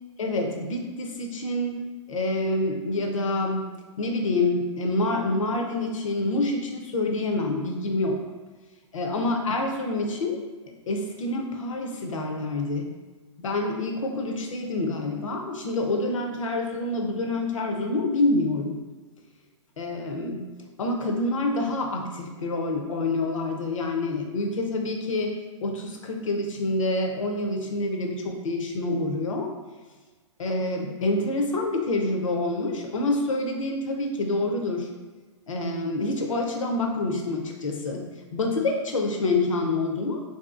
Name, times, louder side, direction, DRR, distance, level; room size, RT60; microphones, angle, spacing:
voice 1, 0.2-8.2 8.9-10.4 10.9-12.9 13.4-18.8 19.8-20.4 20.8-25.4 25.6-29.5 30.4-34.9 35.5-40.2, left 2 dB, 85° left, 3 dB, 0.6 m, -27 dB
3.4 x 2.7 x 2.4 m, 1.3 s
hypercardioid pair, 130°, 16 cm